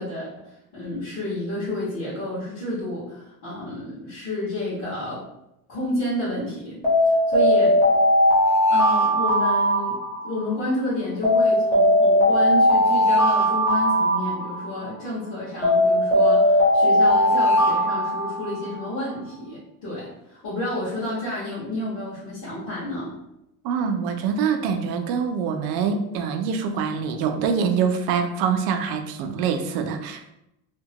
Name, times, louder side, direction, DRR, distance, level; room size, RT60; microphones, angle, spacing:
voice 1, 0.0-5.3 5.7-7.8 8.7-23.1, left 1 dB, 50° left, -13 dB, 1.3 m, -30 dB
Alarm, 6.8-10.5 11.2-14.9 15.6-18.8, left 1 dB, 20° left, 0.8 m, -19 dB
voice 2, 23.6-30.3, right 6 dB, 90° right, 7 dB, 0.5 m, -25 dB
2.9 x 2.1 x 2.8 m, 0.86 s
cardioid pair, 180°, 37 cm